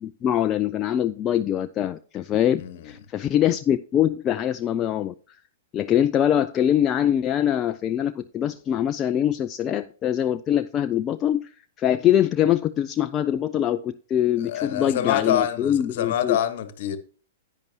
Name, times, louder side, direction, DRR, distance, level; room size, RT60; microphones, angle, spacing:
voice 1, 0.0-5.4 5.7-11.5 11.8-16.4, left 10 dB, 25° left, 0.4 m, -23 dB
voice 2, 14.4-17.0, left 10 dB, 55° left, 1.2 m, -26 dB
10.5 x 9.4 x 2.8 m
figure-of-eight pair, 105°, 0 cm